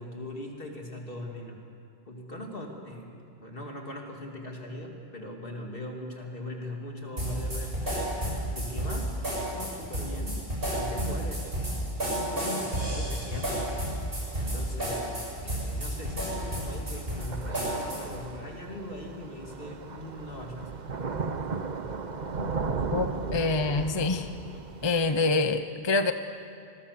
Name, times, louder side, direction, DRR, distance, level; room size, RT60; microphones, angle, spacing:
voice 1, 0.0-1.6 2.0-8.2 8.5-10.4 10.7-13.7 14.3-20.7, left 1 dB, 55° left, 1 dB, 3.1 m, -40 dB
sound 1, 7.2-18.2, right 1 dB, 60° right, 7.5 m, -31 dB
Thunder / Rain, 14.2-25.2, right 4 dB, 45° right, 1.0 m, -36 dB
voice 2, 22.9-24.3 24.8-26.1, left 3 dB, 30° left, 9 dB, 0.7 m, -26 dB
26.5 x 21.0 x 6.9 m, 2.4 s
omnidirectional pair, 1.1 m